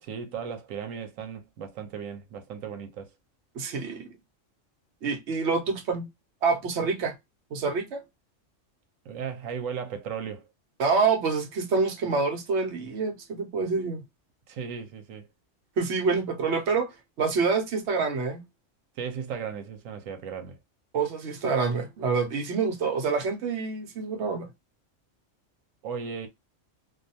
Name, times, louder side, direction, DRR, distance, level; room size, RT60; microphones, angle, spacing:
voice 1, 0.0-3.1 9.0-10.5 14.5-15.3 19.0-20.6 25.8-26.3, right 7 dB, 90° right, 1.1 m, -36 dB
voice 2, 3.6-4.1 5.0-6.1 6.4-7.1 7.5-8.0 10.8-14.0 15.8-18.4 20.9-24.5, right 4 dB, 65° right, 0.9 m, -27 dB
2.5 x 2.3 x 2.6 m
omnidirectional pair, 1.3 m